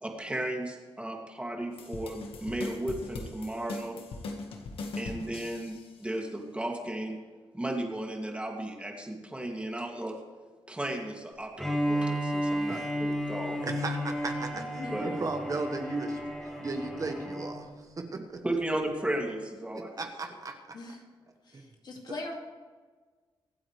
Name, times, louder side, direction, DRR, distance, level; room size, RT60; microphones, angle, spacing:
voice 1, 0.0-4.0 5.0-7.2 7.5-10.2 10.7-13.6 14.9-15.1 18.1-19.9, right 1 dB, 10° right, 1 dB, 2.4 m, -35 dB
sound 1, 1.7-5.9, left 3 dB, 90° left, 1.6 m, -40 dB
Bowed string instrument, 11.6-17.6, equal, 5° left, 3.0 m, -32 dB
voice 2, 13.6-18.4 19.7-20.8 21.5-21.7, right 3 dB, 40° right, 5 dB, 1.4 m, -36 dB
voice 3, 14.5-15.2 20.7-21.0 21.5-22.4, left 2 dB, 50° left, 1 dB, 2.3 m, -41 dB
24.0 x 8.7 x 3.3 m, 1.4 s
cardioid pair, 100°, 9 cm